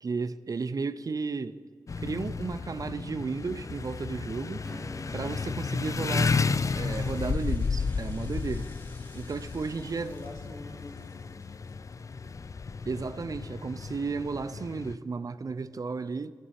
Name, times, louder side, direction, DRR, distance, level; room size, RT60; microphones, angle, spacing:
voice 1, 0.0-1.6 2.0-4.6 5.1-8.7 9.1-10.1 12.9-16.3, right 4 dB, 50° right, 0.4 m, -34 dB
sound 1, 1.9-15.0, left 4 dB, 45° left, 0.3 m, -33 dB
Acoustic guitar / Strum, 4.6-10.8, equal, 5° left, 1.6 m, -51 dB
sound 2, 5.3-12.5 12.8-12.9, left 1 dB, 25° left, 1.5 m, -58 dB
voice 2, 9.7-11.5 12.1-12.4, left 2 dB, 70° left, 3.2 m, -47 dB
12.5 x 9.6 x 4.3 m
cardioid pair, 45°, 8 cm